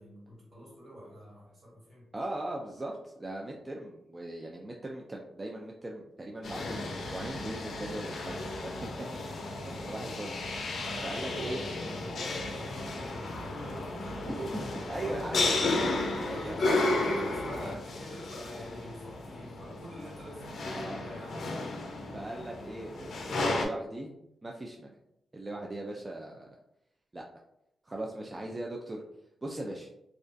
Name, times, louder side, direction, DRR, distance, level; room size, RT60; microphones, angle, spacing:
voice 1, 0.0-2.1 10.8-14.6 14.9-15.9 16.2-21.8, equal, 60° right, -6 dB, 1.4 m, -46 dB
voice 2, 2.1-9.3 9.6-10.3 11.0-11.6 14.3-16.6 20.8-21.1 22.1-24.1 24.4-25.0 25.3-26.5 27.1-27.2 27.8-29.0 29.4-29.9, right 1 dB, 30° right, -1 dB, 0.3 m, -39 dB
sound 1, 6.4-23.6, left 2 dB, 75° left, 0.4 m, -33 dB
2.3 x 2.2 x 2.4 m, 0.84 s
cardioid pair, 65°, 0 cm